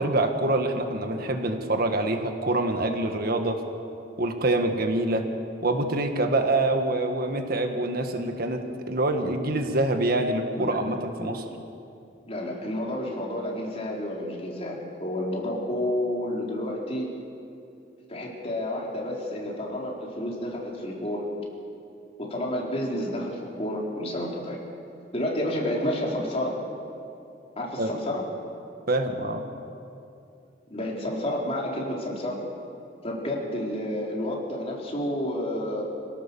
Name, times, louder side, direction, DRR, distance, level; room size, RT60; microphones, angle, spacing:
voice 1, 0.0-3.6 4.2-5.2 5.6-11.4 27.8-27.9 28.9-29.4, right 2 dB, 55° right, 5 dB, 1.6 m, -25 dB
voice 2, 12.2-17.1 18.1-21.3 22.2-24.6 25.1-26.6 27.6-28.3 30.7-32.4 33.0-35.8, left 1 dB, 35° left, -2 dB, 4.2 m, -30 dB
26.5 x 17.5 x 7.1 m, 2.6 s
head